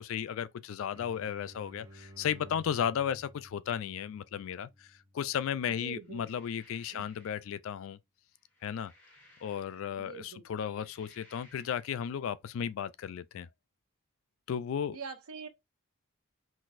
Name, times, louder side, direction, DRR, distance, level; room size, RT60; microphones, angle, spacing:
voice 1, 0.0-8.0 8.6-8.9 9.4-13.5 14.5-15.0, left 8 dB, 65° left, 0.3 m, -34 dB
sound 1, 0.9-6.4, equal, 15° right, 0.6 m, -54 dB
voice 2, 5.8-6.3 6.9-7.0 10.0-10.4 14.9-15.5, right 5 dB, 75° right, 0.5 m, -44 dB
sound 2, 6.0-7.5 8.3-10.0 10.5-11.9, left 1 dB, 10° left, 1.8 m, -61 dB
3.9 x 2.5 x 2.5 m
head